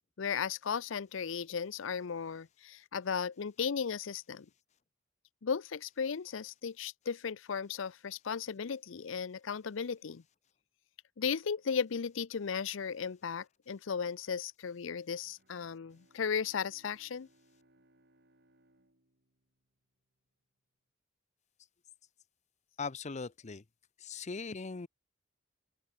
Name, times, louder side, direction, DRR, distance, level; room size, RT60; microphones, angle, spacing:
voice 1, 0.2-4.5 5.4-10.2 11.2-17.3, left 6 dB, 75° left, 0.6 m, -36 dB
Bowed string instrument, 15.2-20.2, right 1 dB, 55° right, 6.7 m, -69 dB
voice 2, 22.8-23.6 24.0-24.9, left 4 dB, 35° left, 0.6 m, -39 dB
open air
head